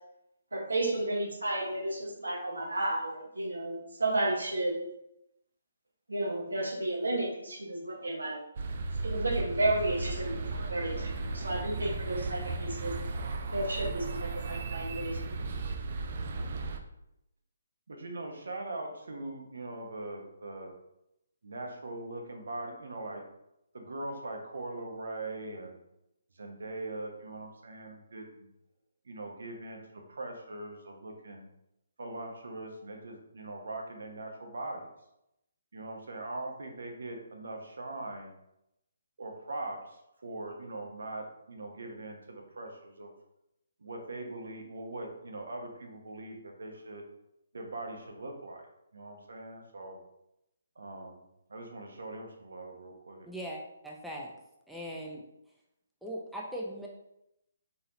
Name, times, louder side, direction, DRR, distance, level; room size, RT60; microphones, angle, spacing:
voice 1, 0.5-4.8 6.1-8.4 9.0-12.9 13.5-15.3, right 1 dB, 90° right, -1 dB, 1.2 m, -32 dB
sound 1, 8.6-16.8, right 3 dB, 50° right, 0.5 m, -35 dB
voice 2, 17.9-20.7 21.4-23.2 23.7-25.8 26.4-28.5 29.1-31.4 32.0-34.9 35.7-38.3 39.2-43.1 43.8-47.0 47.5-48.7 48.9-50.0 50.8-51.2 51.5-53.3, right 2 dB, 70° right, 2 dB, 1.0 m, -41 dB
voice 3, 53.3-54.3 54.7-55.2 56.0-56.9, equal, ahead, -3 dB, 0.6 m, -39 dB
4.1 x 3.7 x 2.8 m, 0.82 s
figure-of-eight pair, 145°, 0 cm